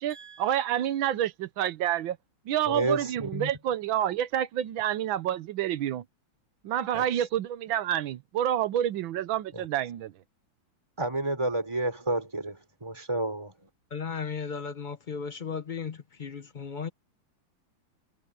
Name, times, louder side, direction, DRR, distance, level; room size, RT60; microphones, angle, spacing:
voice 1, 0.0-2.2 2.5-6.1 6.6-10.1, right 11 dB, 80° right, 1.6 m, -28 dB
voice 2, 2.7-3.5 6.9-7.1 9.5-9.7 11.0-13.7, right 2 dB, 15° right, 4.4 m, -31 dB
voice 3, 13.9-16.9, left 6 dB, 40° left, 0.6 m, -35 dB
omnidirectional pair, 2.1 m